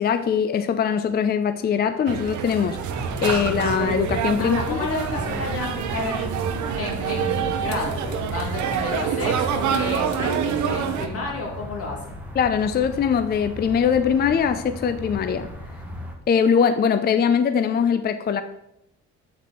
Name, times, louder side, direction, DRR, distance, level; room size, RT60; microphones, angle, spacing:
voice 1, 0.0-2.8 3.2-4.8 12.3-15.5 16.3-18.4, left 7 dB, 35° left, 11 dB, 0.4 m, -21 dB
sound 1, 2.1-11.1, right 7 dB, 75° right, 0.8 m, -26 dB
sound 2, 2.9-16.1, left 1 dB, 5° right, 1.1 m, -37 dB
voice 2, 4.4-6.4 6.7-12.2, left 3 dB, 50° left, -2 dB, 2.5 m, -31 dB
7.2 x 4.4 x 4.2 m, 0.81 s
cardioid pair, 90°, 30 cm